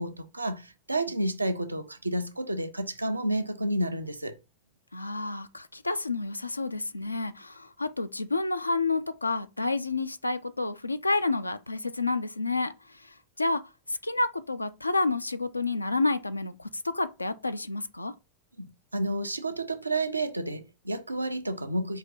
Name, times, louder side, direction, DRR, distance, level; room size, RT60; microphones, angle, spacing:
voice 1, 0.0-4.4 18.6-22.0, right 1 dB, 85° right, 0.5 m, -30 dB
voice 2, 4.9-13.6 13.9-18.1, left 3 dB, 85° left, 0.4 m, -30 dB
4.8 x 2.8 x 3.8 m
figure-of-eight pair, 90°, 0 cm